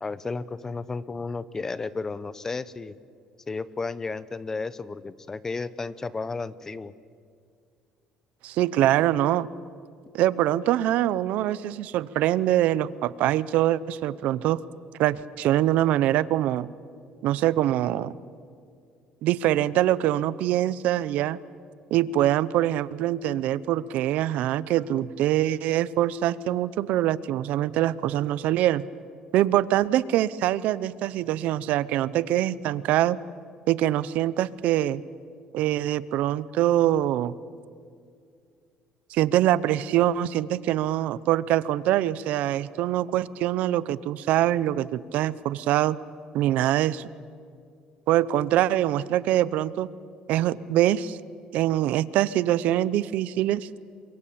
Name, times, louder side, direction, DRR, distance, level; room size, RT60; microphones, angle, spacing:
voice 1, 0.0-2.9 3.5-6.9, left 4 dB, 20° left, 16 dB, 0.8 m, -33 dB
voice 2, 8.4-9.5 10.1-14.6 15.0-16.7 17.2-18.1 19.2-21.4 21.9-28.8 29.3-33.2 33.7-35.0 35.5-37.3 39.1-46.0 46.3-47.1 48.1-49.9 50.3-51.2 51.5-53.7, right 13 dB, 70° right, 18 dB, 0.8 m, -24 dB
28.5 x 24.5 x 8.7 m, 2.2 s
cardioid pair, 140°, 3 cm